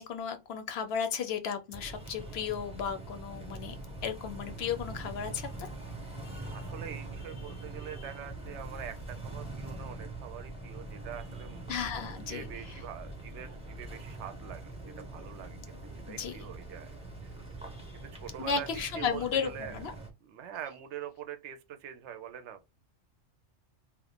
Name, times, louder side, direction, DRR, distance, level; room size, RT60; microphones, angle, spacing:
voice 1, 0.0-3.8 4.0-5.7 11.7-12.8 16.1-16.4 18.4-19.9, left 6 dB, 65° left, 0.8 m, -34 dB
sound 1, 1.7-20.1, right 2 dB, 5° right, 0.7 m, -43 dB
voice 2, 6.5-11.7 12.2-15.6 16.1-16.9 17.9-18.7 18.9-19.8 20.2-22.6, right 9 dB, 75° right, 0.9 m, -44 dB
2.9 x 2.4 x 3.4 m
omnidirectional pair, 1.2 m